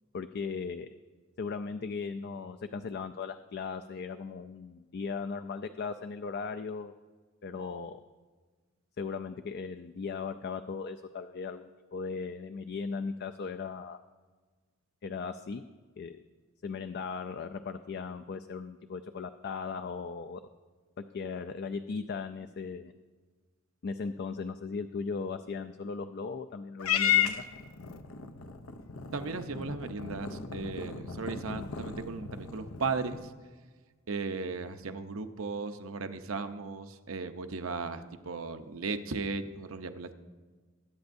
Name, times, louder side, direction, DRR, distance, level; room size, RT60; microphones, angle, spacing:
voice 1, 0.1-0.9 1.4-6.9 7.4-8.0 9.0-14.0 15.0-15.6 16.0-16.2 16.6-20.4 21.1-22.9 23.8-27.4, left 5 dB, 50° left, 8 dB, 0.4 m, -37 dB
Purr / Meow, 26.8-33.3, left 9 dB, 90° left, 0.7 m, -34 dB
voice 2, 29.1-33.3 34.1-40.1, right 4 dB, 70° right, 8 dB, 0.7 m, -36 dB
21.0 x 9.3 x 2.6 m, 1.4 s
head